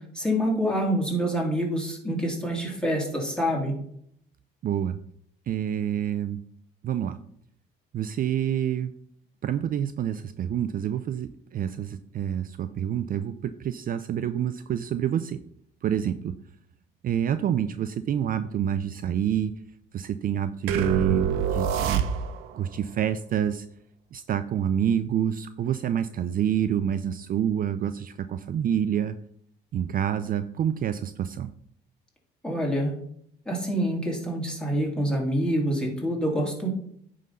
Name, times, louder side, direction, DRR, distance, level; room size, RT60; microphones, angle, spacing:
voice 1, 0.1-3.7 32.4-32.9 33.5-36.7, equal, 5° left, -1 dB, 2.9 m, -26 dB
voice 2, 4.6-5.0 5.5-6.4 6.8-7.2 7.9-8.9 9.4-15.4 15.8-16.3 17.0-19.5 19.9-22.0 22.5-23.7 24.1-29.1 29.7-31.5, right 9 dB, 45° right, 11 dB, 0.5 m, -27 dB
sound 1, 20.7-22.6, right 7 dB, 85° right, 0.8 m, -25 dB
9.2 x 3.8 x 5.5 m, 0.69 s
supercardioid pair, 90°, 20 cm